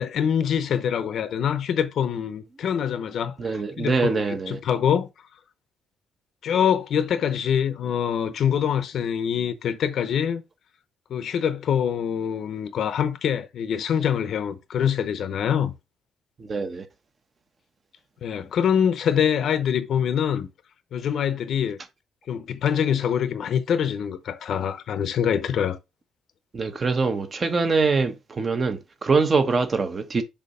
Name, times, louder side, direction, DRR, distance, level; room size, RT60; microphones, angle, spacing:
voice 1, 0.0-5.1 6.4-10.4 11.1-15.7 18.2-20.5 20.9-21.8 22.3-25.8, left 8 dB, 60° left, 0.8 m, -24 dB
voice 2, 3.4-4.6 16.4-16.9 26.5-30.2, right 4 dB, 30° right, 0.9 m, -24 dB
6.8 x 2.9 x 5.5 m
cardioid pair, 140°, 0 cm